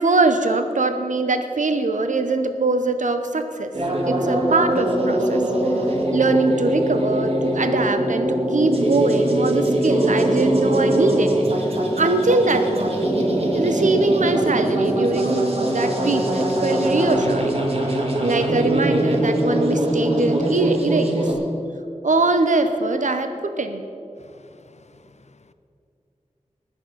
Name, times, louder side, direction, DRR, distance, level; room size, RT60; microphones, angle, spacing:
voice 1, 0.0-3.7 4.0-5.4 6.1-11.3 12.0-12.9 13.5-21.2 22.0-23.8, right 3 dB, 75° right, 8 dB, 0.8 m, -22 dB
sound 1, 3.7-21.3, right 1 dB, 50° right, 2.1 m, -22 dB
voice 2, 24.2-25.5, left 3 dB, 60° left, 12 dB, 0.6 m, -53 dB
19.0 x 7.0 x 5.7 m, 2.5 s
wide cardioid pair, 60°, 13 cm